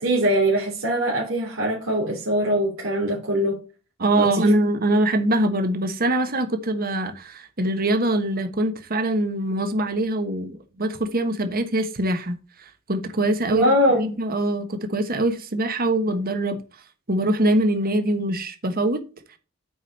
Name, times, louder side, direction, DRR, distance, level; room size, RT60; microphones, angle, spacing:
voice 1, 0.0-3.6 4.2-4.5 13.5-14.0, equal, 90° right, 3.6 m, -22 dB
voice 2, 4.0-12.3 12.9-16.6 17.1-19.0, right 1 dB, 45° right, 1.3 m, -23 dB
8.6 x 5.0 x 4.3 m
head